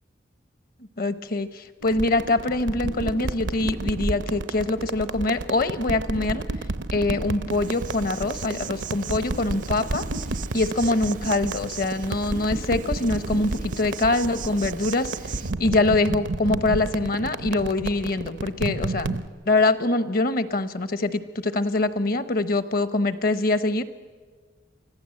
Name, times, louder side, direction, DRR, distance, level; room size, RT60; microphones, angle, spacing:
voice 1, 1.0-6.4 6.9-10.0 10.5-15.1 15.6-19.2 19.5-23.8, left 2 dB, 50° left, 13 dB, 0.9 m, -24 dB
sound 1, 1.8-19.3, right 2 dB, 85° right, 0.8 m, -31 dB
Insect, 7.5-15.5, right 7 dB, 45° right, 0.5 m, -39 dB
25.0 x 15.0 x 7.6 m, 1.5 s
head